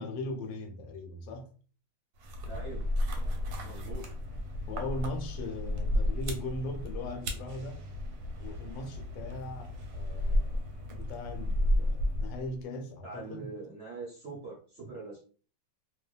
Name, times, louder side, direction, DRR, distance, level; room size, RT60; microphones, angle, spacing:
voice 1, 0.0-1.5 4.7-7.8 8.4-13.5, left 2 dB, 85° left, 1.3 m, -39 dB
sound 1, 2.2-12.6, left 1 dB, 85° right, 1.3 m, -33 dB
voice 2, 2.4-2.9 3.6-4.1 13.0-15.2, right 3 dB, 55° right, 0.8 m, -43 dB
2.9 x 2.2 x 2.3 m
omnidirectional pair, 2.0 m